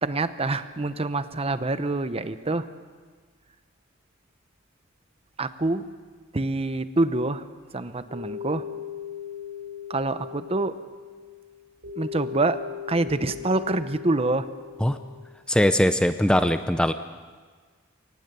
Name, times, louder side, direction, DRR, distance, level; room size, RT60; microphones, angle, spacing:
voice 1, 0.0-2.7 5.4-5.9 6.3-7.5 7.7-8.6 9.9-10.8 12.0-12.6 12.9-14.5, right 2 dB, 30° right, 12 dB, 0.8 m, -26 dB
sound 1, 8.1-15.4, left 8 dB, 85° right, 4.6 m, -39 dB
voice 2, 15.5-16.9, equal, 5° left, 9 dB, 0.5 m, -21 dB
24.0 x 19.0 x 6.9 m, 1.5 s
head